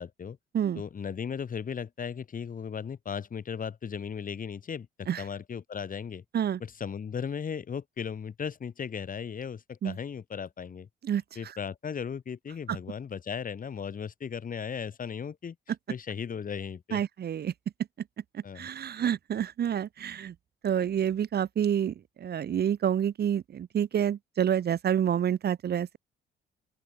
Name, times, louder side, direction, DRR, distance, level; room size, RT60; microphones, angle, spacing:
voice 1, 0.0-0.4 0.7-6.2 6.6-10.9 11.4-15.6 15.9-17.0 18.4-18.7, left 7 dB, 45° left, 2.0 m, -36 dB
voice 2, 16.9-17.5 18.3-20.3 20.6-26.0, right 9 dB, 55° right, 1.2 m, -28 dB
open air
cardioid pair, 90°, 20 cm